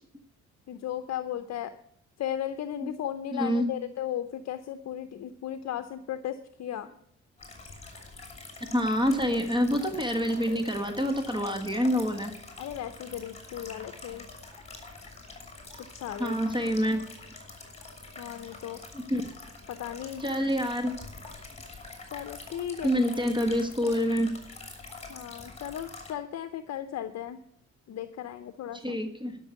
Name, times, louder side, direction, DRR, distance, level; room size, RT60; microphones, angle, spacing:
voice 1, 0.7-1.7 2.2-6.9 12.6-14.3 15.9-16.4 18.2-18.8 19.7-20.2 22.1-22.9 25.1-27.4 27.9-29.0, left 10 dB, 60° left, 10 dB, 0.7 m, -36 dB
voice 2, 3.3-3.7 8.7-12.3 16.2-17.0 18.9-19.2 20.2-20.9 22.8-24.3 28.7-29.4, equal, 15° right, 6 dB, 1.6 m, -27 dB
sound 1, 7.4-26.1, left 3 dB, 20° left, 3.3 m, -45 dB
12.0 x 6.1 x 8.2 m, 0.68 s
cardioid pair, 90°, 30 cm